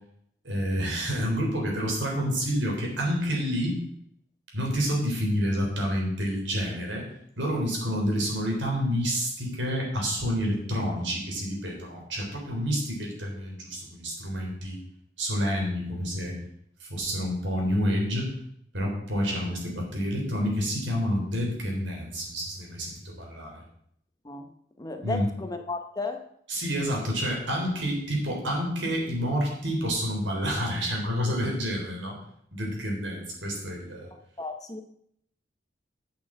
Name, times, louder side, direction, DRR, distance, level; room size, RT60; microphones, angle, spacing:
voice 1, 0.4-3.8 4.5-7.1 7.4-14.8 15.2-16.4 16.8-18.3 18.7-23.6 25.0-25.3 26.5-32.2 32.5-34.1, equal, 80° right, 0 dB, 3.6 m, -28 dB
voice 2, 24.8-26.3 34.4-34.8, left 3 dB, 20° left, 6 dB, 0.8 m, -34 dB
8.4 x 6.4 x 7.3 m, 0.71 s
head